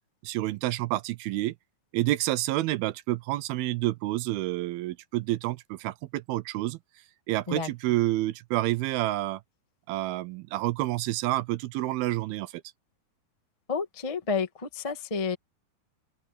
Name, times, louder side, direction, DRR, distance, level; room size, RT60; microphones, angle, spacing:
voice 1, 0.2-1.5 1.9-6.8 7.3-9.4 9.9-12.6, right 17 dB, 80° right, 2.4 m, -29 dB
voice 2, 13.7-15.3, left 5 dB, 25° left, 0.6 m, -30 dB
open air
omnidirectional pair, 4.5 m